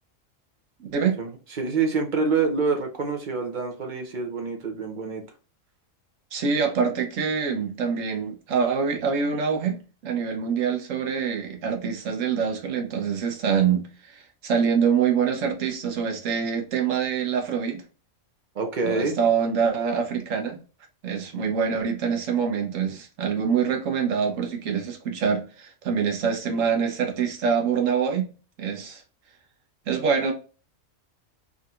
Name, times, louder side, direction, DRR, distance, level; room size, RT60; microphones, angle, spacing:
voice 1, 0.8-1.2 6.3-17.8 18.8-20.6 21.0-28.3 28.6-29.0 29.9-30.3, right 6 dB, 75° right, 1.2 m, -25 dB
voice 2, 1.6-5.2 18.5-19.2, right 4 dB, 45° right, 0.7 m, -26 dB
3.7 x 2.7 x 2.4 m
omnidirectional pair, 1.4 m